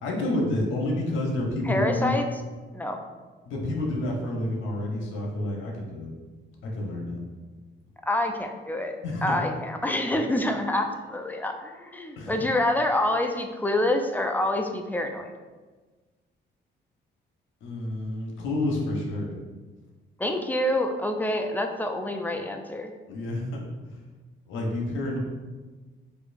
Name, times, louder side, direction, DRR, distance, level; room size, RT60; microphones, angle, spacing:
voice 1, 0.0-2.1 3.4-6.1 6.6-7.2 9.0-9.4 12.2-12.4 17.6-19.3 23.1-24.0 24.5-25.2, left 1 dB, 80° left, -1 dB, 0.9 m, -29 dB
voice 2, 1.7-2.3 2.7-3.0 8.1-8.9 9.2-15.3 20.2-22.9, left 1 dB, 10° left, 4 dB, 0.4 m, -27 dB
4.2 x 2.8 x 2.5 m, 1.3 s
cardioid pair, 90°, 20 cm